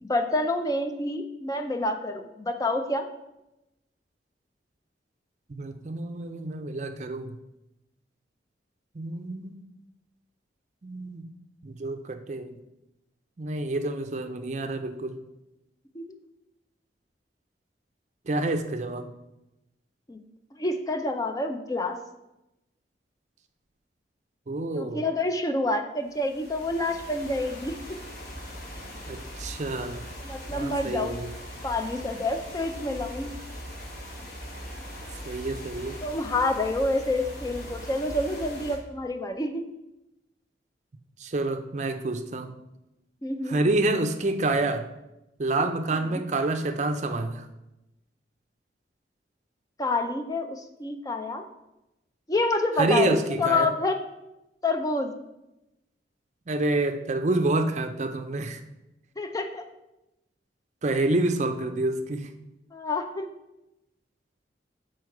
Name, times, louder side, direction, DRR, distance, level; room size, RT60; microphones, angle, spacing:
voice 1, 0.0-3.1 15.9-16.1 20.1-20.2 20.6-22.0 24.7-27.8 30.2-31.2 31.6-33.3 36.0-39.6 43.2-43.6 46.1-46.2 49.8-51.4 52.3-54.0 54.6-55.1 59.2-59.6 62.7-63.3, left 2 dB, 20° left, 5 dB, 0.5 m, -28 dB
voice 2, 5.5-7.3 8.9-9.6 10.8-11.2 11.6-12.5 13.4-15.2 18.3-19.1 24.5-25.1 29.1-30.0 30.5-31.3 35.3-36.0 41.2-42.5 43.5-44.9 45.4-47.4 52.8-53.7 56.5-58.6 60.8-62.3, right 2 dB, 40° right, 7 dB, 0.5 m, -28 dB
sound 1, 26.1-38.8, equal, 55° left, 1.4 m, -40 dB
6.2 x 4.5 x 4.6 m, 0.93 s
head